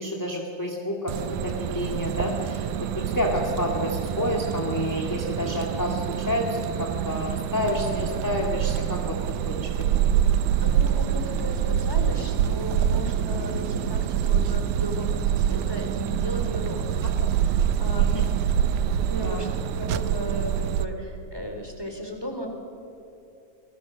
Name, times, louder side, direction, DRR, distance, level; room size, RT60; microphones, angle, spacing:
voice 1, 0.0-9.2 9.5-9.7 9.9-10.1 17.9-18.2 19.2-19.4, left 1 dB, 5° left, -1 dB, 1.7 m, -29 dB
sound 1, 1.1-20.9, right 9 dB, 85° right, 2.3 m, -26 dB
voice 2, 10.6-17.1 17.4-18.1 19.1-19.5 19.8-22.5, equal, 10° right, 2 dB, 3.4 m, -35 dB
29.0 x 20.0 x 6.4 m, 2.8 s
omnidirectional pair, 3.4 m